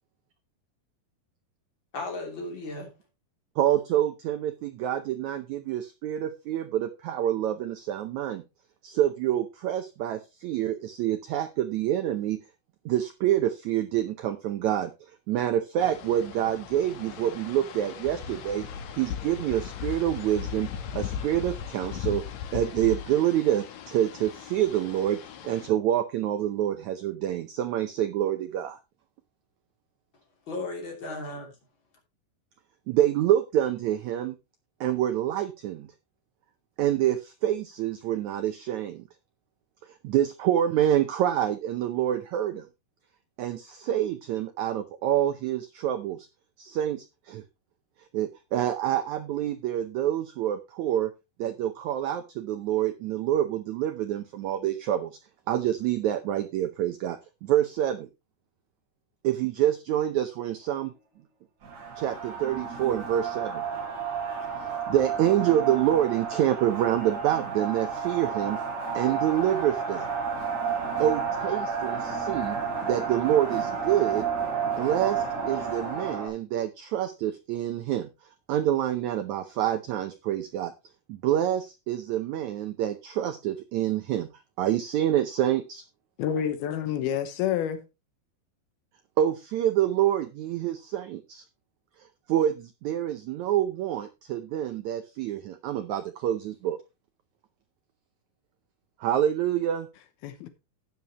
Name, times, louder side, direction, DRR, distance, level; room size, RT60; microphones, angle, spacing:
voice 1, 1.9-2.9 30.5-31.5, left 2 dB, 35° left, 3.4 m, -35 dB
voice 2, 3.6-8.4 8.8-12.4 12.8-14.9 15.3-18.7 19.0-22.2 22.5-25.2 25.4-28.8 32.9-34.3 34.8-35.9 36.8-39.0 40.0-42.7 43.4-46.2 46.6-47.4 48.1-51.1 51.4-55.2 55.5-58.1 59.2-60.9 62.0-63.6 64.6-68.6 68.9-70.1 71.0-74.3 74.6-78.1 78.5-80.7 81.1-84.3 84.6-85.8 89.2-91.4 92.3-96.8 99.0-99.9, right 11 dB, 85° right, 1.6 m, -27 dB
sound 1, 15.8-25.7, left 8 dB, 65° left, 2.2 m, -38 dB
sound 2, 61.6-76.3, right 6 dB, 50° right, 5.1 m, -31 dB
voice 3, 86.2-87.8 100.2-100.5, left 9 dB, 80° left, 3.0 m, -28 dB
12.5 x 9.2 x 3.0 m
omnidirectional pair, 4.3 m